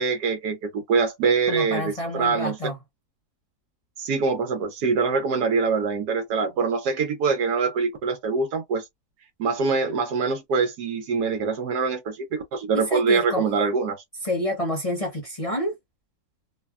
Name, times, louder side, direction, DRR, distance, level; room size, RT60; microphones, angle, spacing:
voice 1, 0.0-2.6 4.0-8.8 9.4-14.0, right 4 dB, 85° right, 1.3 m, -24 dB
voice 2, 1.5-2.8 12.7-13.5 14.2-15.8, left 1 dB, 30° left, 0.7 m, -28 dB
3.2 x 2.1 x 2.3 m
omnidirectional pair, 1.7 m